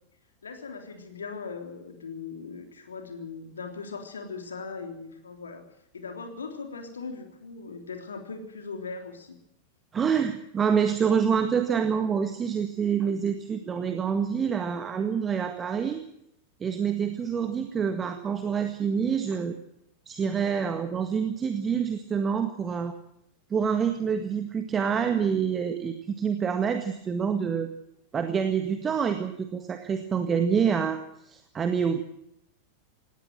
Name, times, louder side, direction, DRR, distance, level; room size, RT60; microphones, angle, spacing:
voice 1, 0.4-5.6 5.9-9.4, left 4 dB, 70° left, 5 dB, 3.5 m, -39 dB
voice 2, 9.9-16.0 16.6-19.6 20.1-23.0 23.5-27.7 28.1-31.0 31.2-32.0, right 7 dB, 20° right, 7 dB, 1.7 m, -27 dB
18.5 x 18.0 x 7.8 m, 0.76 s
figure-of-eight pair, 90°, 0 cm